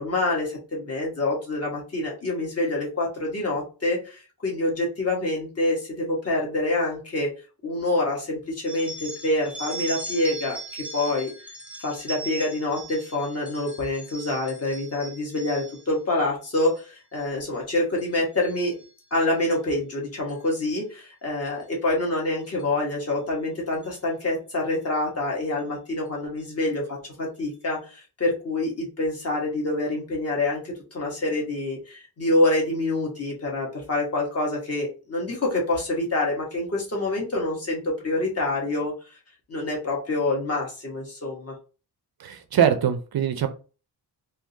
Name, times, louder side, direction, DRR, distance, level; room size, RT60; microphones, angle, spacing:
voice 1, 0.0-7.3 7.6-11.3 11.8-18.7 19.1-38.9 39.5-41.5, left 2 dB, 35° left, -2 dB, 1.2 m, -26 dB
sound 1, 8.7-16.0 16.4-16.8 17.1-17.6 18.0-19.3 20.3-20.5 21.5-21.6 22.6-22.7 23.1-23.2 23.7-24.0, right 3 dB, 5° right, 0.5 m, -39 dB
voice 2, 42.2-43.5, right 9 dB, 60° right, 9 dB, 0.5 m, -22 dB
3.7 x 2.7 x 2.7 m, 0.34 s
wide cardioid pair, 180°, 42 cm